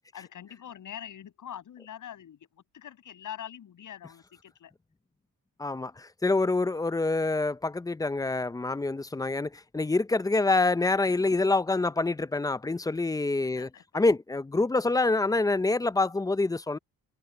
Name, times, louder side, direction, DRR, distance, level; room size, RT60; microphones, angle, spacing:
voice 1, 0.1-4.7 6.6-6.9 13.5-14.0, left 10 dB, 65° left, 6.6 m, -44 dB
voice 2, 5.6-16.8, left 3 dB, 10° left, 0.5 m, -26 dB
cardioid pair, 120°, 33 cm